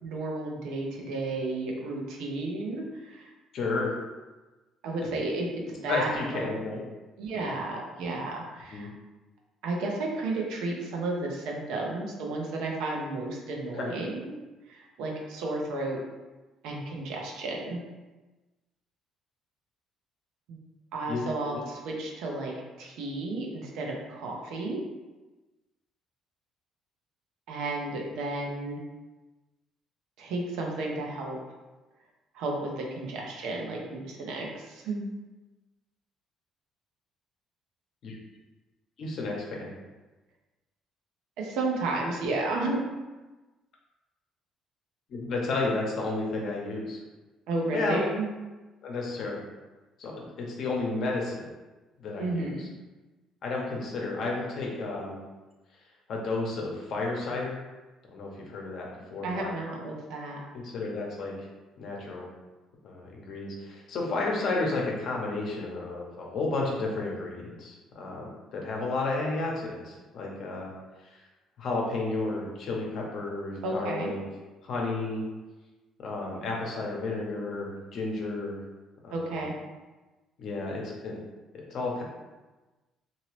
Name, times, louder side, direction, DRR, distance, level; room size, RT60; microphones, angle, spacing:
voice 1, 0.0-3.3 4.8-6.5 7.2-8.9 9.6-14.3 14.7-16.0 16.6-17.8 20.5-20.6 20.9-22.5 22.8-24.8 27.5-28.8 30.2-31.4 32.3-35.1 41.4-42.8 47.5-48.4 52.2-52.7 59.2-60.4 73.6-74.1 79.1-79.5, right 2 dB, 85° right, -1 dB, 0.7 m, -32 dB
voice 2, 3.5-3.9 5.9-6.8 7.3-7.5 8.7-8.9 13.8-13.9 21.1-21.2 21.5-21.6 38.0-38.2 39.0-39.7 45.1-47.0 47.7-48.0 48.8-49.4 50.0-51.5 52.0-52.7 53.4-55.2 56.1-57.6 58.1-59.5 60.5-61.3 61.8-62.3 62.8-70.7 71.1-71.2 71.6-74.2 74.6-75.2 76.0-78.6 79.0-79.5 80.4-81.2 81.7-82.0, left 3 dB, 55° left, -1 dB, 0.8 m, -32 dB
2.8 x 2.7 x 3.1 m, 1.2 s
cardioid pair, 125°, 0 cm